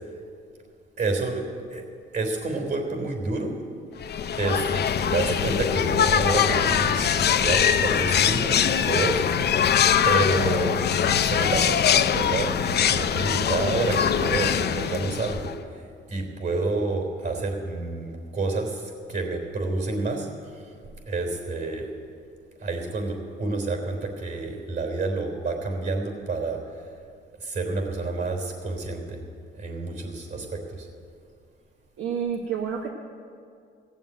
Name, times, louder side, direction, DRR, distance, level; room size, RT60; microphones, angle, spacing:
voice 1, 1.0-1.4 1.7-1.9 2.1-3.5 4.3-9.6 10.0-10.8 11.2-15.8 16.1-20.3 21.1-21.9 22.6-26.6 27.4-29.2 29.5-30.9, right 3 dB, 55° right, 2 dB, 3.7 m, -29 dB
sound 1, 4.0-15.6, left 8 dB, 55° left, 0.7 m, -22 dB
voice 2, 32.0-32.9, right 7 dB, 75° right, 1 dB, 1.1 m, -29 dB
16.5 x 7.2 x 9.1 m, 2.3 s
cardioid pair, 90°, 20 cm